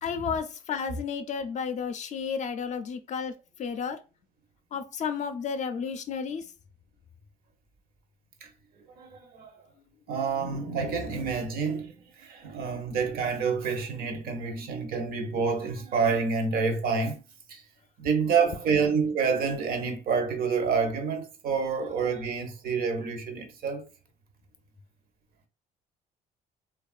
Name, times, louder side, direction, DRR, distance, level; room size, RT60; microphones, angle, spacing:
voice 1, 0.0-3.3 3.6-4.0 4.7-6.5, left 6 dB, 45° left, 0.4 m, -32 dB
voice 2, 9.0-9.5 10.1-17.2 17.5-17.6 18.0-23.9, right 5 dB, 60° right, 0.6 m, -28 dB
2.9 x 2.3 x 2.3 m
cardioid pair, 110°, 17 cm